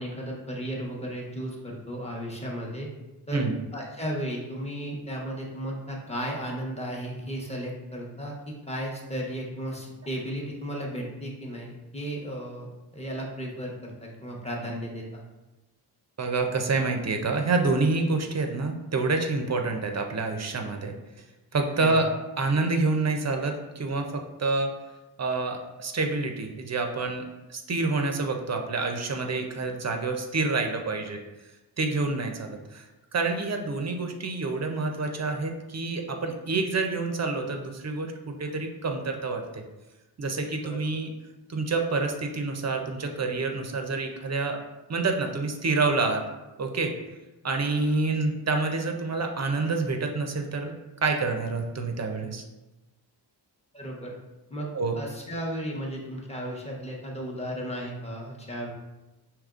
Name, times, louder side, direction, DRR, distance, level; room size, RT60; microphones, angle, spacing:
voice 1, 0.0-2.9 3.3-3.5 3.7-15.2 21.8-22.0 40.6-40.8 53.7-54.2 54.5-54.7 54.9-58.7, equal, 15° left, -2 dB, 0.9 m, -35 dB
voice 2, 16.2-21.0 21.5-22.1 22.4-24.7 25.2-27.2 27.5-31.2 31.8-32.8 33.1-39.6 40.2-41.1 41.5-44.6 44.9-46.2 46.6-46.9 47.4-50.7 51.0-52.4 54.7-55.0, right 3 dB, 40° right, 4 dB, 0.5 m, -27 dB
5.0 x 2.9 x 2.4 m, 1.0 s
wide cardioid pair, 80°, 41 cm